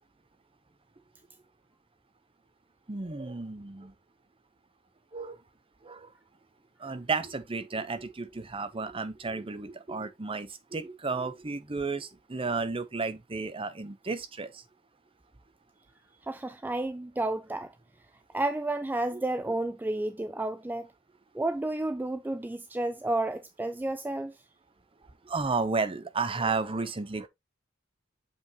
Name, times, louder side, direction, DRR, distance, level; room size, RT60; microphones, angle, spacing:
voice 1, 2.9-3.9 5.1-5.4 5.8-6.1 6.8-14.6 19.1-19.2 25.2-27.3, right 4 dB, 30° right, 0.7 m, -33 dB
voice 2, 16.2-17.7 18.3-20.9 21.3-24.4, right 2 dB, 10° right, 0.3 m, -31 dB
7.0 x 5.6 x 2.9 m
head